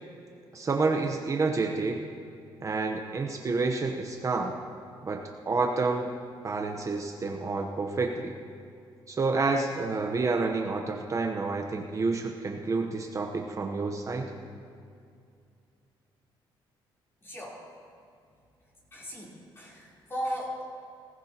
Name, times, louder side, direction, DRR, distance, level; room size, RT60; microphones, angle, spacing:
voice 1, 0.5-2.0 2.6-4.6 5.0-6.1 6.4-8.3 9.1-14.3, right 3 dB, 35° right, 2 dB, 1.0 m, -29 dB
voice 2, 17.2-17.6 18.9-20.6, equal, 25° left, -5 dB, 3.8 m, -36 dB
20.5 x 15.0 x 3.0 m, 2.4 s
cardioid pair, 105°, 10 cm